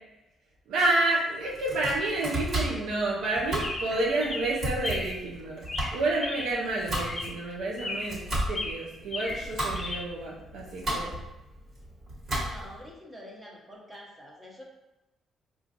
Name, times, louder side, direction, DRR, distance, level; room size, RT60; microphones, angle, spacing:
voice 1, 0.7-5.6 5.9-11.1, right 2 dB, 85° right, -4 dB, 0.5 m, -29 dB
Domestic sounds home sounds, 1.5-12.8, right 1 dB, 45° right, 1.5 m, -34 dB
Chirp tweet, 3.6-5.2 5.7-6.7 6.9-7.4 7.8-8.2 8.5-10.0, left 2 dB, 25° left, 0.6 m, -36 dB
voice 2, 12.3-14.6, equal, 15° right, -2 dB, 0.9 m, -47 dB
4.4 x 2.5 x 2.5 m, 0.96 s
cardioid pair, 120°, 0 cm